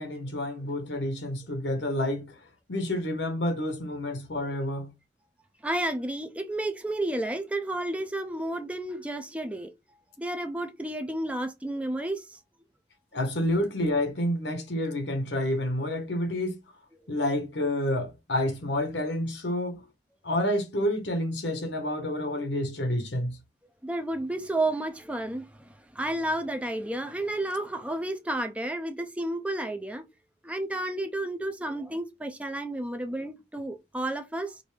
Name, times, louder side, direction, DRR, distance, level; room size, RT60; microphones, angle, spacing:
voice 1, 0.0-2.3 2.7-4.9 13.1-16.6 17.1-19.8 20.2-23.4, left 1 dB, 80° left, 1.1 m, -29 dB
voice 2, 5.6-9.7 10.2-12.4 23.8-30.0 30.4-34.6, right 1 dB, 5° right, 0.5 m, -31 dB
5.2 x 2.6 x 3.3 m
head